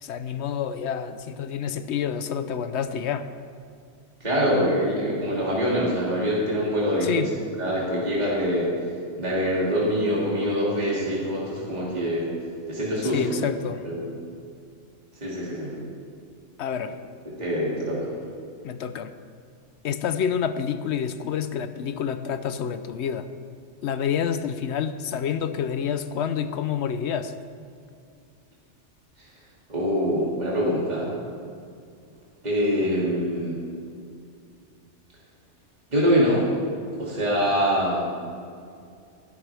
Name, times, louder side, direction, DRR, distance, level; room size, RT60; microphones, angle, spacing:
voice 1, 0.0-3.3 7.0-7.3 13.0-13.9 16.6-17.0 18.6-19.1 19.8-23.3 23.8-27.3, left 8 dB, 70° left, 11 dB, 0.9 m, -28 dB
voice 2, 4.2-7.3 7.6-8.7 9.2-12.3 12.7-13.3 13.8-14.0 15.2-15.7 17.2-18.1 29.7-31.1 32.4-33.6 35.9-36.4 37.0-38.1, equal, 35° right, -7 dB, 2.5 m, -24 dB
19.5 x 11.0 x 3.4 m, 2.4 s
omnidirectional pair, 1.2 m